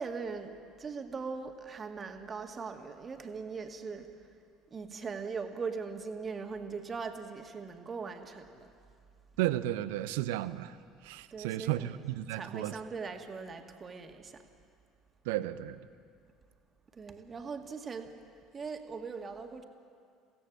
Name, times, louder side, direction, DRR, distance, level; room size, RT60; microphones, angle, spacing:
voice 1, 0.0-4.3 4.7-8.7 11.3-11.9 12.3-14.4 16.9-18.1 18.5-19.6, right 5 dB, 30° right, 5 dB, 2.0 m, -40 dB
voice 2, 9.4-10.8 11.0-12.8 15.3-15.8, right 14 dB, 65° right, 14 dB, 0.7 m, -33 dB
24.0 x 16.5 x 7.4 m, 2.3 s
figure-of-eight pair, 60°, 0 cm